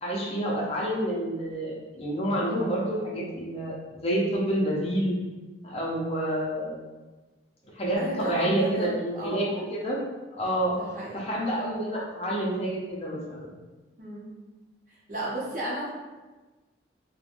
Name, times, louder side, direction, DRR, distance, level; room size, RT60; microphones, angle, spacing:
voice 1, 0.0-3.8 4.0-5.2 5.6-6.8 7.7-10.0 10.4-10.7 11.1-13.5, right 1 dB, 35° left, -4 dB, 0.6 m, -28 dB
voice 2, 8.0-9.5 10.7-11.2 14.0-14.3 14.9-15.9, right 1 dB, 45° right, -6 dB, 0.8 m, -34 dB
3.1 x 2.2 x 2.5 m, 1.2 s
head